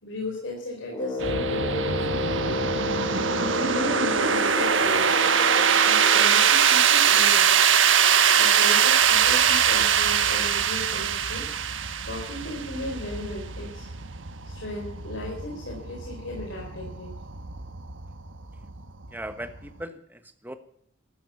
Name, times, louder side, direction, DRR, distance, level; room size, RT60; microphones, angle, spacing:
voice 1, 0.0-2.6 3.4-5.2 5.8-7.7 8.3-11.5 12.0-13.9 14.4-17.1, left 1 dB, 65° left, -1 dB, 4.6 m, -35 dB
Brass instrument, 0.9-6.5, left 2 dB, 20° left, 4.0 m, -31 dB
sound 1, 1.2-19.8, right 7 dB, 70° right, 1.3 m, -23 dB
voice 2, 19.1-20.5, right 1 dB, 10° right, 9 dB, 1.3 m, -38 dB
14.0 x 13.0 x 7.1 m, 0.67 s
head